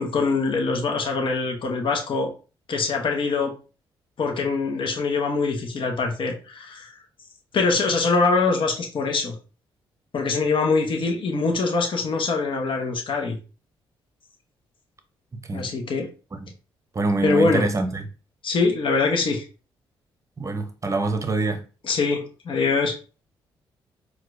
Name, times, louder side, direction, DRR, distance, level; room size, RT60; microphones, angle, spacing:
voice 1, 0.0-2.3 2.7-3.5 4.2-6.9 7.5-9.3 10.1-13.4 15.5-16.1 17.2-17.6 18.4-19.4 21.8-23.0, left 4 dB, 55° left, 0.9 m, -23 dB
voice 2, 16.9-18.0 20.4-21.6, right 3 dB, 30° right, 0.7 m, -25 dB
4.2 x 2.3 x 2.5 m
supercardioid pair, 55°, 10 cm